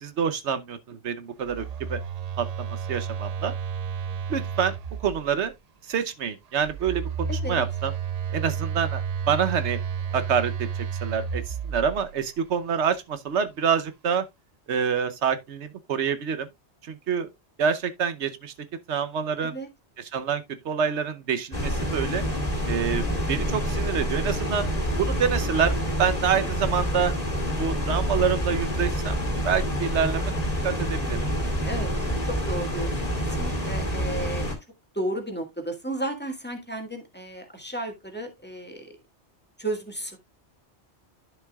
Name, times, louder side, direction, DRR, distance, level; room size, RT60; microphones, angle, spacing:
voice 1, 0.0-2.0 2.4-3.5 4.3-4.7 5.0-5.5 5.9-7.9 8.3-9.0 9.3-9.8 10.1-10.7 11.0-14.3 14.7-16.5 16.9-17.3 17.6-18.5 18.9-19.5 20.1-22.2 22.7-24.7 25.0-27.1 27.6-29.2 29.4-30.2 30.6-31.2, right 7 dB, 80° right, 1.1 m, -27 dB
Telephone, 1.4-5.5 6.6-12.3, right 7 dB, 55° right, 0.4 m, -32 dB
voice 2, 7.3-7.6 19.4-19.7 31.6-31.9 32.2-34.5 34.9-39.0 39.6-40.2, right 1 dB, 10° left, 1.7 m, -33 dB
sound 1, 21.5-34.5, equal, 35° left, 2.3 m, -27 dB
11.0 x 6.6 x 2.3 m
omnidirectional pair, 1.1 m